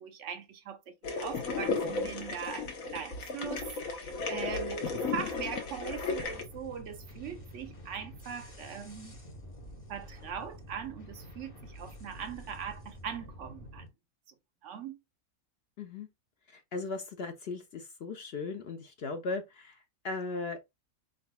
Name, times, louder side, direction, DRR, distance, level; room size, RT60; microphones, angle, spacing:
voice 1, 0.0-9.2 9.9-13.9 14.6-15.0, right 7 dB, 65° right, 1.0 m, -41 dB
sound 1, 1.0-6.4, left 4 dB, 75° left, 1.3 m, -34 dB
sound 2, 6.2-13.9, equal, 25° left, 1.0 m, -48 dB
voice 2, 15.8-16.1 16.5-19.8 20.0-20.6, left 3 dB, 55° left, 0.8 m, -37 dB
4.3 x 4.0 x 2.2 m
omnidirectional pair, 1.4 m